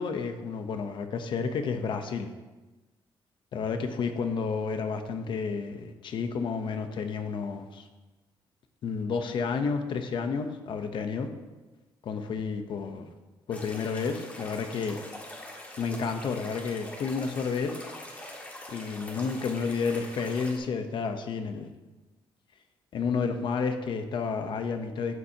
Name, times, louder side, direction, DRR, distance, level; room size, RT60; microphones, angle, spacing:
voice 1, 0.0-2.3 3.5-7.9 8.8-11.3 12.0-13.0 13.5-15.0 15.8-17.8 18.7-21.7 22.9-25.2, left 5 dB, 60° left, 7 dB, 0.9 m, -31 dB
sound 1, 13.5-20.6, left 1 dB, 15° left, 1.7 m, -43 dB
12.5 x 8.3 x 2.9 m, 1.2 s
wide cardioid pair, 170°, 9 cm